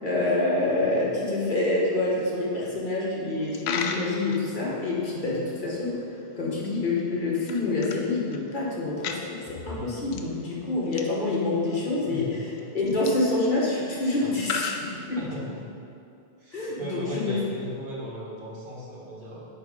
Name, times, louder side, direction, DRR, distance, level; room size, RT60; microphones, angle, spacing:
voice 1, 0.0-6.0 6.4-12.2 12.7-15.2 16.5-17.4, left 2 dB, 50° left, -5 dB, 1.3 m, -27 dB
Coin (dropping), 3.4-15.6, left 5 dB, 90° left, 0.8 m, -39 dB
voice 2, 12.1-12.4 15.2-15.6 16.4-19.5, equal, 55° right, -5 dB, 1.5 m, -37 dB
8.9 x 3.3 x 5.0 m, 2.6 s
omnidirectional pair, 1.1 m